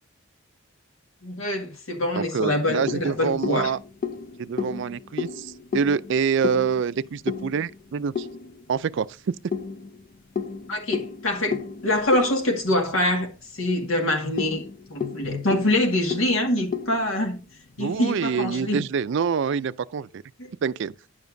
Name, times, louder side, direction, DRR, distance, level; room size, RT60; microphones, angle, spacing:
voice 1, 1.2-3.7 10.7-17.4 17.8-18.8 20.4-20.5, left 1 dB, 75° left, 1.8 m, -25 dB
voice 2, 2.1-3.8 4.4-8.3 8.7-9.1 17.8-20.2 20.6-20.9, right 6 dB, 60° right, 0.4 m, -26 dB
sound 1, 2.4-8.8 9.5-13.4 13.7-13.8 14.2-17.7, left 5 dB, 40° left, 0.5 m, -33 dB
10.0 x 7.0 x 2.6 m
head